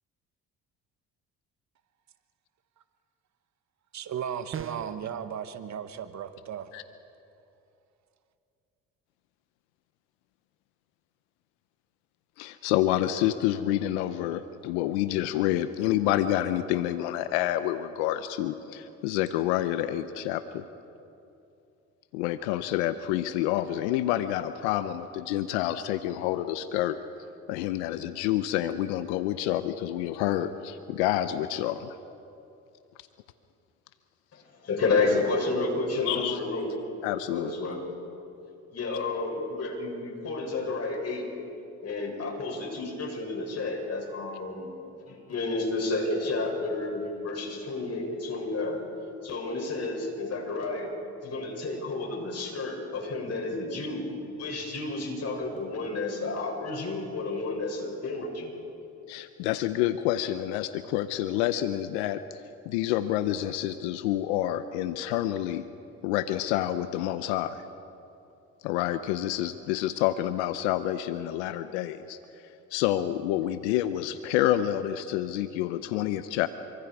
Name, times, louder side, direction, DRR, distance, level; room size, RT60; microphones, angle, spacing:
voice 1, 3.9-6.7, right 8 dB, 55° right, 9 dB, 1.6 m, -35 dB
sound 1, 4.5-5.1, right 9 dB, 40° right, 0.9 m, -37 dB
voice 2, 12.4-20.6 22.1-27.0 27.5-32.0 36.1-36.4 37.0-37.5 59.1-65.6 66.0-67.6 68.6-72.2 72.7-76.5, left 13 dB, 90° left, 12 dB, 0.8 m, -28 dB
voice 3, 34.3-36.7 37.3-37.8 38.7-41.3 41.8-44.7 45.1-48.8 49.2-50.9 51.2-54.0 54.4-58.5, left 3 dB, 50° left, 1 dB, 7.3 m, -31 dB
27.5 x 25.0 x 4.8 m, 2.7 s
supercardioid pair, 65°, 33 cm